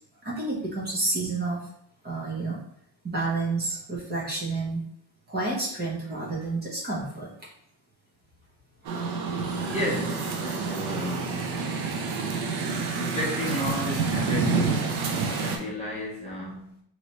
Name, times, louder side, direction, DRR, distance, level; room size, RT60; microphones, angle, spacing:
voice 1, 0.2-1.6 2.0-2.6 3.0-4.8 5.3-7.3 8.8-9.0, right 3 dB, 25° right, -5 dB, 0.9 m, -30 dB
sound 1, 8.8-15.6, right 4 dB, 90° right, 0.7 m, -28 dB
voice 2, 9.7-11.4 12.5-14.9 15.4-16.8, left 1 dB, 15° left, -6 dB, 0.9 m, -33 dB
3.1 x 2.9 x 2.8 m, 0.70 s
cardioid pair, 155°, 37 cm